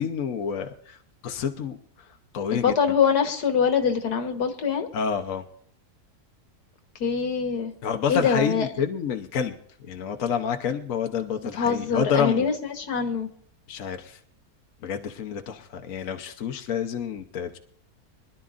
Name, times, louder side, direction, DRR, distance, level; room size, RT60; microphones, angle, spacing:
voice 1, 0.0-2.8 4.9-5.5 7.8-12.5 13.7-14.2 14.8-17.6, left 7 dB, 60° left, 5 dB, 1.2 m, -29 dB
voice 2, 2.5-4.9 7.0-7.7 8.1-8.7 11.5-13.3, left 6 dB, 80° left, 5 dB, 1.8 m, -24 dB
24.0 x 11.5 x 2.5 m, 0.62 s
omnidirectional pair, 1.6 m